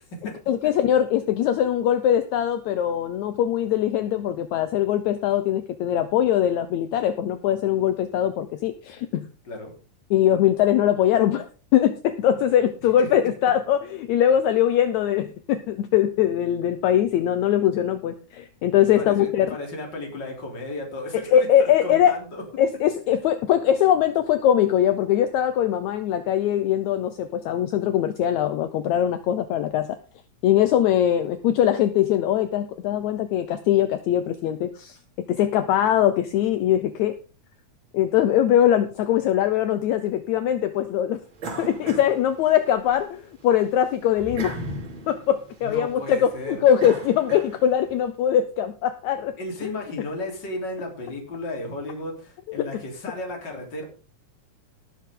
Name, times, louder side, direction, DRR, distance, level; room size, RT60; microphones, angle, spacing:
voice 1, 0.5-9.3 10.1-19.5 21.3-22.2 22.6-30.0 30.4-35.0 35.3-37.1 37.9-41.2 41.6-44.5 45.1-49.3 49.6-49.7, left 10 dB, 75° left, 10 dB, 2.0 m, -21 dB
voice 2, 19.0-22.4 23.2-23.3 45.6-46.6 49.4-53.8, left 2 dB, 35° left, 0 dB, 4.2 m, -34 dB
sound 1, 41.4-42.9 43.3-47.9, right 2 dB, 40° right, 3.2 m, -37 dB
18.0 x 8.0 x 3.8 m, 0.34 s
omnidirectional pair, 3.6 m